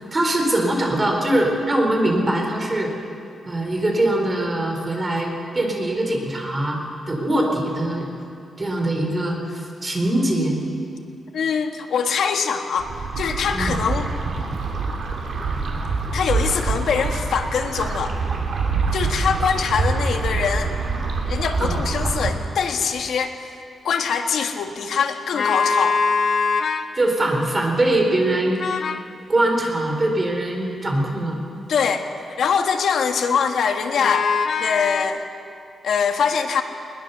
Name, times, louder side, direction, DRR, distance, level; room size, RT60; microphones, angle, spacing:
voice 1, 0.1-2.9 3.5-6.8 7.1-8.1 8.6-10.6 13.5-13.7 21.6-21.8 26.9-28.6 29.3-31.4, right 1 dB, 20° right, 1 dB, 3.8 m, -22 dB
voice 2, 11.3-12.9 13.2-14.1 16.1-18.2 18.9-20.7 21.3-23.3 23.8-26.0 31.7-32.1 32.4-34.3 34.6-35.2 35.8-36.6, left 6 dB, 75° left, 5 dB, 1.6 m, -23 dB
sound 1, 12.8-22.3, right 4 dB, 55° right, 2.9 m, -25 dB
sound 2, 25.3-26.9 28.6-29.1 34.0-35.1, left 5 dB, 50° left, 0.8 m, -22 dB
21.0 x 20.5 x 6.9 m, 2.5 s
wide cardioid pair, 155°, 0 cm